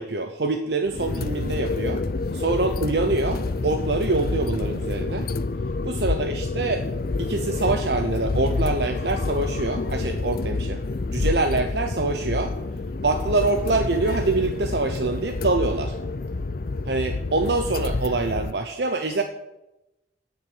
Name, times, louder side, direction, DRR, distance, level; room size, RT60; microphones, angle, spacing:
voice 1, 0.0-2.0 2.3-5.3 5.8-6.9 7.2-10.8 11.1-12.5 13.0-15.9 16.9-19.2, right 3 dB, 70° right, 6 dB, 0.9 m, -25 dB
sound 1, 0.9-18.5, left 3 dB, 55° left, 0.5 m, -28 dB
9.4 x 7.7 x 9.1 m, 0.94 s
head